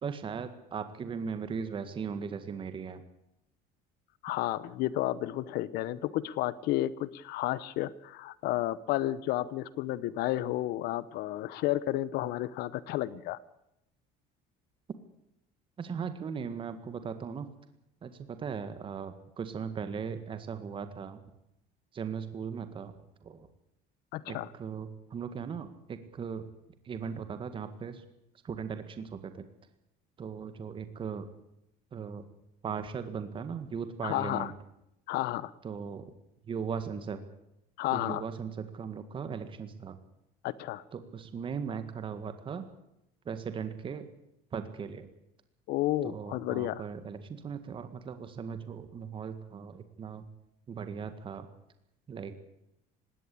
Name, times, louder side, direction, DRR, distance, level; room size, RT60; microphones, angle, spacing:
voice 1, 0.0-3.0 15.8-17.5 18.0-18.1 18.4-21.2 21.9-22.9 23.2-23.5 24.3-26.4 26.9-28.0 28.4-29.3 30.2-31.3 31.9-32.2 32.6-34.5 35.6-36.1 36.5-37.2 37.9-40.0 40.9-42.7 43.3-44.0 44.5-45.1 46.0-50.2 50.7-51.5 52.1-52.3, right 6 dB, 30° right, 10 dB, 1.8 m, -38 dB
voice 2, 4.2-13.4 24.1-24.5 34.0-34.5 35.1-35.5 37.8-38.2 40.4-40.8 45.7-46.9, left 15 dB, 70° left, 19 dB, 0.9 m, -32 dB
20.0 x 17.5 x 8.5 m, 0.84 s
cardioid pair, 145°, 17 cm